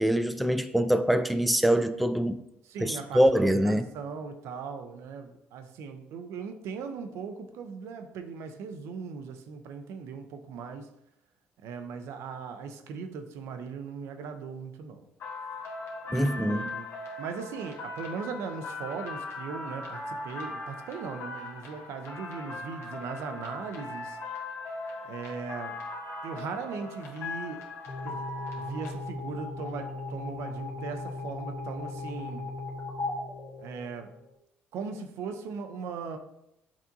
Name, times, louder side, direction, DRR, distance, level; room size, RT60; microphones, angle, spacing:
voice 1, 0.0-2.4 2.8-3.8 16.1-16.6, equal, ahead, 0.3 m, -24 dB
voice 2, 2.6-10.9 11.6-15.1 16.1-16.9 17.2-24.2 25.0-25.8 26.2-27.7 28.0-28.2 28.5-32.5 33.6-34.1 34.7-36.2, right 5 dB, 75° right, 0.5 m, -38 dB
sound 1, 15.2-28.9, left 2 dB, 65° left, 1.0 m, -39 dB
sound 2, 27.9-34.3, left 2 dB, 40° left, 1.2 m, -37 dB
7.2 x 2.6 x 2.6 m
supercardioid pair, 75°, 5 cm